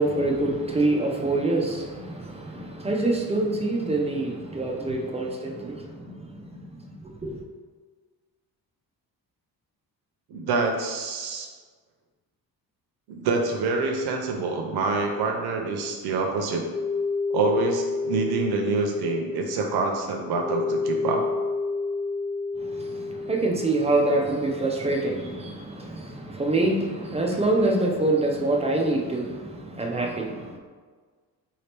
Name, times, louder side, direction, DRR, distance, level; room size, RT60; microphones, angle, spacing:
voice 1, 0.0-7.4 22.6-30.6, right 2 dB, 15° right, 0 dB, 0.3 m, -26 dB
voice 2, 10.3-11.5 13.1-16.7 17.3-21.3, right 3 dB, 80° right, 2 dB, 0.7 m, -26 dB
sound 1, 16.6-23.9, left 3 dB, 85° left, 0.7 m, -29 dB
4.9 x 2.9 x 3.3 m, 1.5 s
cardioid pair, 150°, 38 cm